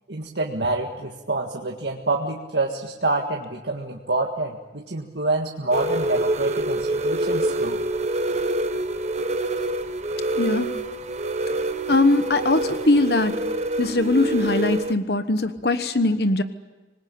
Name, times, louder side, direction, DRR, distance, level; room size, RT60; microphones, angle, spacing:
voice 1, 0.1-7.8, right 2 dB, 75° right, 0 dB, 1.8 m, -27 dB
sound 1, 5.7-14.9, right 1 dB, 40° right, 1.0 m, -26 dB
voice 2, 10.4-10.7 11.9-13.4 13.8-16.4, left 2 dB, 60° left, 10 dB, 1.2 m, -21 dB
25.5 x 20.5 x 8.7 m, 1.2 s
head